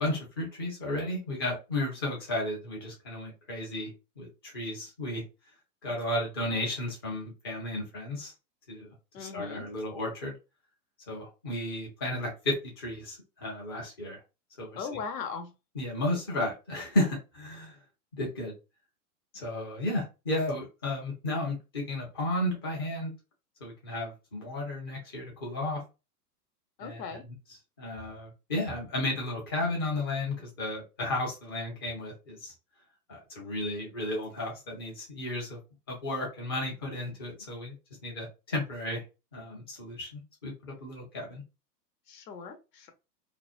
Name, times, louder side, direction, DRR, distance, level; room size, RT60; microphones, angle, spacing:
voice 1, 0.0-5.2 5.8-8.3 8.7-8.9 9.2-10.3 11.1-14.2 14.6-14.8 15.8-17.8 18.1-18.5 19.3-23.1 23.6-25.8 26.8-27.0 27.8-32.5 33.1-35.6 35.9-37.7 38.0-39.0 39.3-41.4, left 1 dB, 20° left, -1 dB, 0.3 m, -33 dB
voice 2, 9.1-9.6 14.8-15.5 26.8-27.2 42.1-42.9, left 5 dB, 75° left, 7 dB, 0.9 m, -39 dB
2.5 x 2.1 x 2.3 m, 0.28 s
hypercardioid pair, 130°, 49 cm